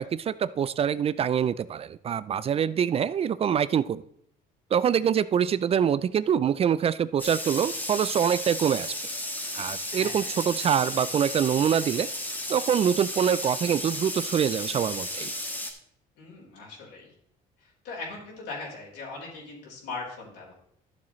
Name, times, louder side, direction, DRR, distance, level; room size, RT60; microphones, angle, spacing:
voice 1, 0.0-4.0 4.7-8.9 9.5-12.1 12.5-15.3, right 8 dB, 35° right, 16 dB, 0.3 m, -25 dB
sound 1, 7.2-15.7, left 1 dB, 10° left, 1.4 m, -34 dB
voice 2, 9.9-10.4 16.2-17.1 17.6-20.5, left 3 dB, 80° left, -4 dB, 4.2 m, -40 dB
12.0 x 7.3 x 3.1 m, 0.70 s
cardioid pair, 110°, 17 cm